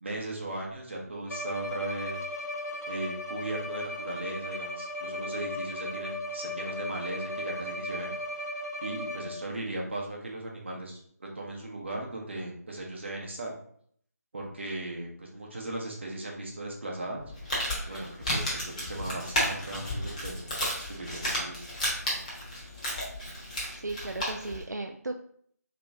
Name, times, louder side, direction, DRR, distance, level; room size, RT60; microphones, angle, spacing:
voice 1, 0.0-2.2 2.9-8.2 8.5-13.5 14.3-17.2 17.9-21.7, right 2 dB, 40° right, -1 dB, 0.9 m, -37 dB
Bowed string instrument, 1.3-9.5, left 1 dB, 70° left, 0.8 m, -36 dB
Crumpling crinkling, 17.2-24.6, equal, 25° left, 1.0 m, -33 dB
voice 2, 23.8-25.3, right 2 dB, 80° right, 4 dB, 0.4 m, -36 dB
3.0 x 2.9 x 3.5 m, 0.63 s
figure-of-eight pair, 160°, 9 cm